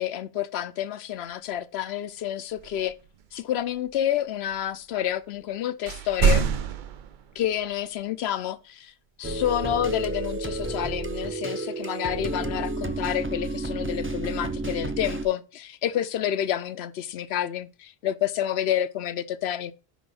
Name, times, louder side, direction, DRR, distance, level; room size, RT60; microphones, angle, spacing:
voice 1, 0.0-3.0 3.3-6.5 7.4-8.9 9.2-19.7, left 11 dB, 90° left, 0.9 m, -29 dB
sound 1, 1.3-1.4 2.5-5.5 5.9-8.0 9.3-10.4 12.2-12.8 13.4-14.2, right 6 dB, 55° right, 0.7 m, -30 dB
sound 2, 9.2-15.3, right 2 dB, 15° right, 0.5 m, -31 dB
6.1 x 5.2 x 5.4 m
omnidirectional pair, 1.0 m